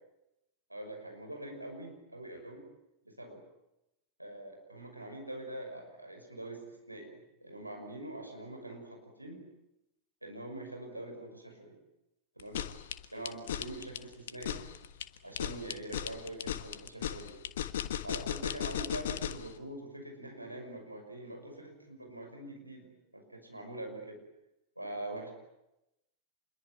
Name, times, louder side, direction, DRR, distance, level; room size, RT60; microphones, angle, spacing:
voice 1, 0.7-2.7 3.0-3.4 4.2-9.5 10.2-11.8 12.4-12.7 13.1-14.6 15.2-17.3 18.0-24.2 24.8-25.3, right 1 dB, 85° right, 3 dB, 6.1 m, -44 dB
sound 1, 12.4-19.5, left 10 dB, 60° left, 1.5 m, -36 dB
27.5 x 22.0 x 9.3 m, 0.90 s
figure-of-eight pair, 90°, 0 cm